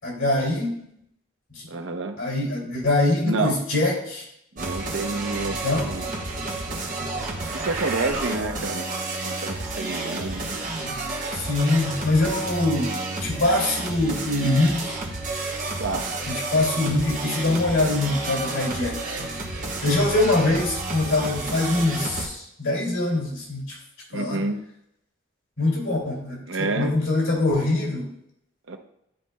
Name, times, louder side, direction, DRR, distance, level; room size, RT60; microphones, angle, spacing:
voice 1, 0.0-0.7 1.5-1.7 2.2-4.2 5.6-5.9 11.3-15.0 16.3-19.0 19.8-23.8 24.1-24.4 25.6-28.1, left 2 dB, 90° left, -2 dB, 2.4 m, -23 dB
voice 2, 1.7-2.2 3.2-3.6 4.6-6.1 7.5-9.0 9.2-10.4 15.8-16.1 24.1-24.6 26.5-27.0 28.7-28.8, right 3 dB, 80° right, 6 dB, 0.7 m, -28 dB
sound 1, 4.6-22.3, right 2 dB, 40° right, 1.1 m, -31 dB
11.0 x 4.1 x 2.2 m, 0.77 s
head